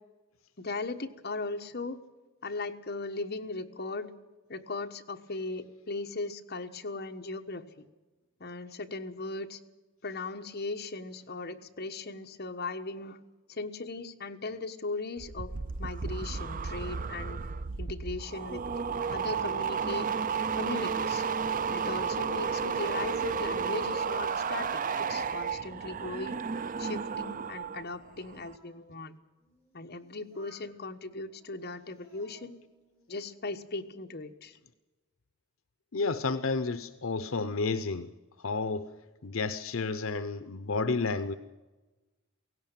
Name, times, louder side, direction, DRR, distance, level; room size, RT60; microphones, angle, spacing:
voice 1, 0.6-2.0 2.4-4.1 4.5-7.6 8.4-9.6 10.0-13.2 13.5-15.5 15.8-17.4 17.8-18.6 19.1-20.1 20.5-21.2 21.7-26.4 26.8-29.1 29.7-32.5 33.1-34.6, left 3 dB, 50° left, 5 dB, 1.3 m, -38 dB
sound 1, 15.2-27.8 28.1-28.6, right 6 dB, 40° right, 0.5 m, -32 dB
Singing, 21.5-23.1 23.4-25.8 26.1-28.8 29.4-30.7 31.3-33.3 33.7-34.2, right 1 dB, 15° right, 6.9 m, -64 dB
voice 2, 35.9-38.1 38.4-38.9 39.2-41.3, left 4 dB, 75° left, 12 dB, 0.8 m, -31 dB
17.5 x 17.0 x 9.1 m, 1.2 s
head